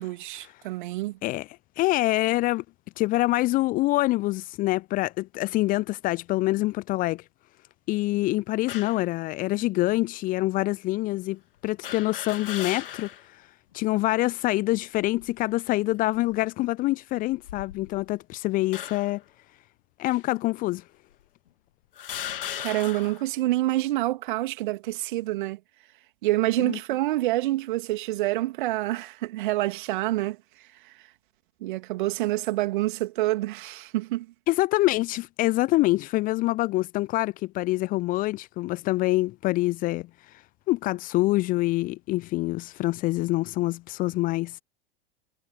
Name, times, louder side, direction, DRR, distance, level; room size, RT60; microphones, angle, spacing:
voice 1, 0.0-1.2 22.6-25.6 26.2-30.9 31.6-34.3, right 17 dB, 55° right, 2.9 m, -27 dB
voice 2, 1.8-2.6 3.0-7.2 7.9-13.5 13.7-19.2 20.0-20.8 26.6-26.8 34.5-40.1 40.7-44.6, left 18 dB, 30° left, 0.5 m, -25 dB
sound 1, 8.7-9.1 9.9-10.0 11.8-13.3 13.7-13.8 15.0-15.4 16.1-16.3 17.3-18.1 18.7-19.2 20.1-20.2 21.1-21.2 22.0-23.3, left 10 dB, 65° left, 3.0 m, -37 dB
figure-of-eight pair, 85°, 30 cm